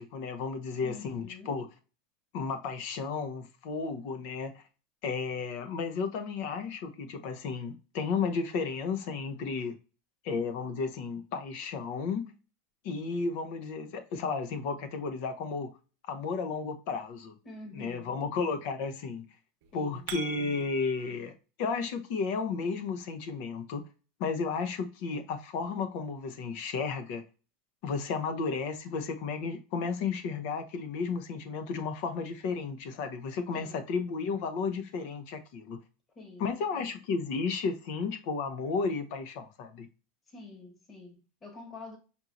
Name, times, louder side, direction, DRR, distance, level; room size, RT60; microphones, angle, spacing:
voice 1, 0.0-1.7 2.3-4.6 5.0-9.8 10.2-12.3 12.8-15.8 16.1-17.3 17.7-19.3 19.7-21.3 21.6-23.9 24.2-27.2 27.8-35.8 36.4-39.9, left 5 dB, 65° left, 0.7 m, -33 dB
voice 2, 0.8-1.7 17.4-18.3 19.7-20.1 33.5-33.8 36.1-36.9 40.3-42.0, left 2 dB, 25° left, 1.3 m, -47 dB
sound 1, 19.6-21.1, right 9 dB, 70° right, 0.7 m, -42 dB
5.4 x 2.9 x 2.5 m
supercardioid pair, 130°, 0 cm